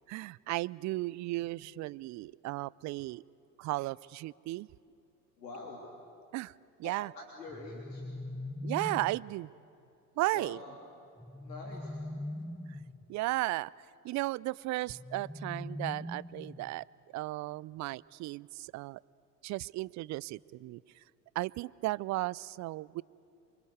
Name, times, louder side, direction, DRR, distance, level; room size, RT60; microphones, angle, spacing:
voice 1, 0.1-3.2 3.6-4.7 6.3-6.5 6.8-7.1 8.6-9.5 10.2-10.6 13.1-13.7 14.0-16.8 17.1-19.0 19.4-20.8 21.4-23.0, right 19 dB, 35° right, 23 dB, 0.5 m, -35 dB
voice 2, 5.4-5.8 6.8-8.1 10.3-10.8 11.3-12.0, left 2 dB, 80° left, -1 dB, 3.5 m, -45 dB
sound 1, 7.5-9.3 11.2-13.0 14.9-16.8, left 1 dB, ahead, 0.6 m, -41 dB
28.0 x 24.5 x 8.0 m, 2.7 s
hypercardioid pair, 75°, 48 cm